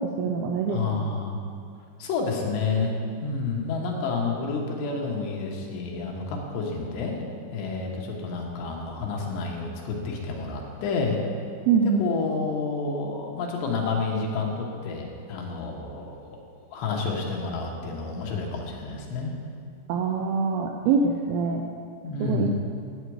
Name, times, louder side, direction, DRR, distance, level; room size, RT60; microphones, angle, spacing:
voice 1, 0.0-1.1 11.7-12.1 19.9-21.7 22.2-22.5, right 5 dB, 85° right, 2 dB, 2.2 m, -24 dB
voice 2, 0.7-1.4 2.0-2.9 3.2-7.2 7.5-11.2 11.8-16.3 16.7-19.3 22.0-22.5, left 4 dB, 75° left, 0 dB, 3.3 m, -29 dB
11.5 x 8.1 x 4.7 m, 2.4 s
omnidirectional pair, 5.0 m